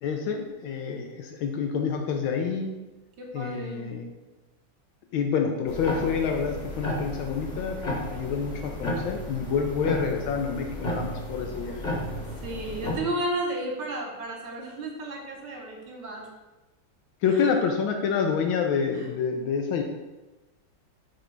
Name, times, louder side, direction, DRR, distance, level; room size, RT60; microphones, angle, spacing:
voice 1, 0.0-2.7 3.3-4.1 5.1-11.8 17.2-19.8, left 6 dB, 85° left, 3 dB, 1.4 m, -28 dB
voice 2, 3.2-3.8 12.4-16.3 17.3-17.5 18.9-19.0, right 1 dB, 65° right, -1 dB, 1.7 m, -33 dB
sound 1, 5.7-13.0, left 1 dB, 30° left, 1.0 m, -33 dB
6.2 x 3.3 x 5.1 m, 1.1 s
omnidirectional pair, 2.1 m